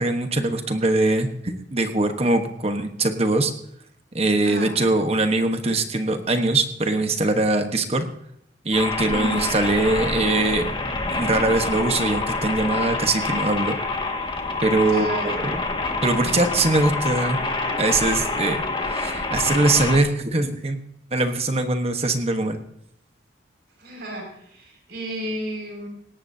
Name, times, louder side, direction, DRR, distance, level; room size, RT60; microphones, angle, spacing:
voice 1, 0.0-3.5 4.1-8.1 8.6-10.7 11.1-13.8 14.6-15.6 16.0-17.4 17.8-20.8 21.1-22.6, right 2 dB, 35° right, 7 dB, 1.2 m, -22 dB
voice 2, 4.4-4.8 9.1-9.5 14.8-15.4 23.8-25.9, equal, 60° right, 0 dB, 5.9 m, -33 dB
sound 1, 8.7-20.0, left 3 dB, 30° left, 1.9 m, -27 dB
18.5 x 18.0 x 2.8 m, 0.73 s
head